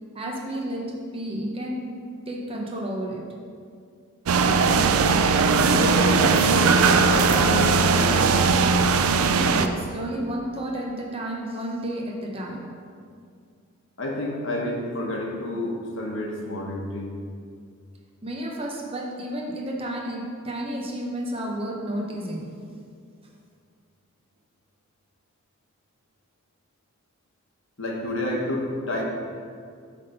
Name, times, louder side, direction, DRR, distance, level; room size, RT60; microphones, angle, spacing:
voice 1, 0.1-1.9 2.3-3.3 9.2-12.6 18.2-22.5, right 1 dB, 25° right, -1 dB, 0.8 m, -31 dB
sound 1, 4.3-9.7, right 4 dB, 75° right, 0.4 m, -19 dB
voice 2, 5.6-8.4 14.0-17.1 27.8-29.0, left 1 dB, 55° left, -2 dB, 1.1 m, -29 dB
8.1 x 3.6 x 5.5 m, 2.3 s
head